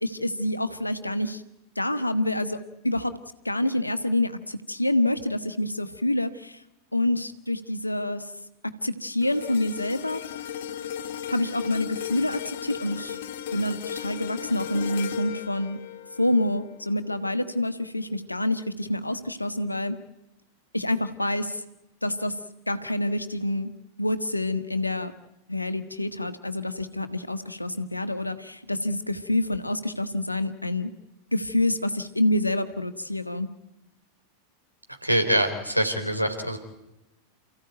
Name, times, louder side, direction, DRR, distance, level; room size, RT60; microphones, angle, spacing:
voice 1, 0.0-1.4 1.7-3.1 3.4-6.6 6.9-8.3 8.8-10.2 11.3-13.2 13.5-15.8 16.2-20.0 20.7-21.6 22.0-22.4 22.7-23.7 24.0-25.1 25.5-30.9 31.3-33.5, left 1 dB, 85° left, 11 dB, 1.5 m, -27 dB
sound 1, 9.2-17.6 18.0-18.2, left 10 dB, 55° left, 1.7 m, -36 dB
voice 2, 35.0-36.6, right 1 dB, 90° right, 6 dB, 3.6 m, -24 dB
29.0 x 15.5 x 9.2 m, 0.93 s
figure-of-eight pair, 90°, 0 cm